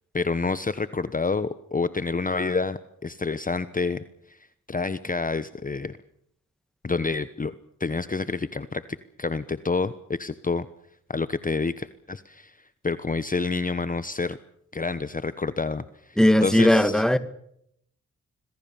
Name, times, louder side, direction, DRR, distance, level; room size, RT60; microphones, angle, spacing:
voice 1, 0.1-4.4 4.7-5.9 6.8-7.5 7.8-10.7 11.1-12.6 12.8-14.4 14.7-17.0, left 4 dB, 25° left, 1.1 m, -28 dB
voice 2, 16.2-17.2, left 1 dB, ahead, 2.0 m, -18 dB
26.5 x 20.5 x 7.1 m
cardioid pair, 80°, 30 cm